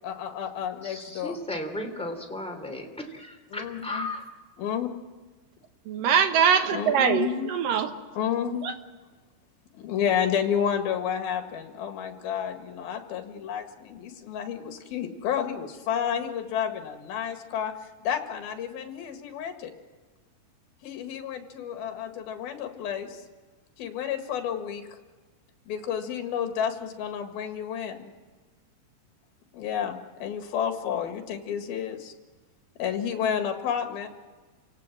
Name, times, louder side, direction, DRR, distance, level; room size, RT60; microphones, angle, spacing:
voice 1, 0.0-1.4 3.5-4.1 4.6-4.9 6.7-7.5 8.1-8.7 9.7-19.7 20.8-23.2 23.8-24.9 25.7-28.1 29.5-32.1 32.8-34.1, left 8 dB, 70° left, 5 dB, 3.6 m, -30 dB
voice 2, 0.8-4.2, left 1 dB, ahead, 2 dB, 2.0 m, -35 dB
voice 3, 5.9-7.9 8.6-8.7, right 7 dB, 65° right, 7 dB, 2.7 m, -23 dB
29.5 x 17.5 x 7.6 m, 1.4 s
omnidirectional pair, 4.7 m